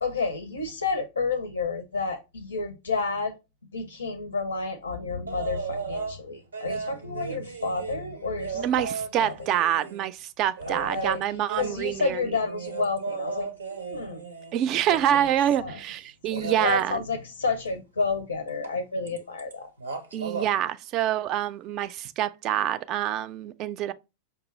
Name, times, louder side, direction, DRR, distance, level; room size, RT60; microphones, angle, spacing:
voice 1, 0.0-3.3 3.7-8.9 9.2-9.3 10.7-11.2 11.6-14.2 14.9-15.2 15.6-15.8 16.3-19.7, left 4 dB, 90° left, 0.5 m, -30 dB
sound 1, 5.3-6.2 6.5-10.1 10.6-15.4 16.3-16.8 18.6-18.8 19.1-19.5 19.8-20.5 21.9-22.0, right 5 dB, 90° right, 0.6 m, -36 dB
voice 2, 8.5-12.2 14.5-17.0 20.1-23.9, right 11 dB, 45° right, 0.3 m, -26 dB
5.4 x 2.3 x 3.0 m
hypercardioid pair, 90°, 0 cm